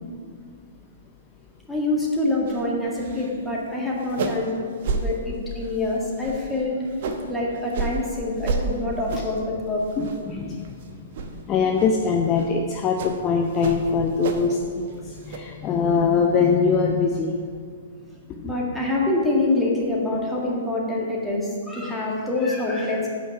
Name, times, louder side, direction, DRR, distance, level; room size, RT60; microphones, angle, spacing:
voice 1, 1.7-4.7 4.9-6.7 7.3-9.8 18.4-23.1, left 2 dB, 5° left, -4 dB, 1.8 m, -25 dB
sound 1, 2.5-2.6 2.9-3.4 3.7-3.8 4.0-4.5 4.8-5.0 5.5-5.8 6.2-7.3 7.7-8.0 8.4-8.6 9.1-9.4 9.8-10.4 10.6-10.8 11.1-11.3 11.8-11.9 12.3-12.5 13.0-13.2 13.6-14.6 14.9-15.4, right 4 dB, 50° right, 0.9 m, -30 dB
voice 2, 10.3-11.1 11.5-17.6 18.3-18.5, left 5 dB, 25° left, 2 dB, 0.6 m, -23 dB
8.5 x 5.4 x 5.7 m, 2.1 s
figure-of-eight pair, 115°, 0 cm